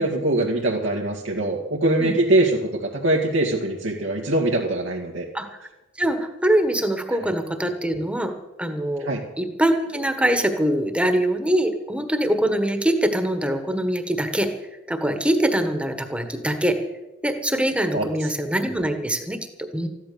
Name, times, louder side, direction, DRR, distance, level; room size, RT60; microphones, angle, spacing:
voice 1, 0.0-5.3 9.0-9.2 17.9-18.1, right 2 dB, 80° right, -2 dB, 2.0 m, -22 dB
voice 2, 6.0-8.3 8.6-9.1 9.4-14.5 14.9-16.8 17.2-19.4 19.7-19.9, right 1 dB, 5° right, 7 dB, 1.4 m, -23 dB
14.5 x 12.0 x 6.9 m, 1.0 s
head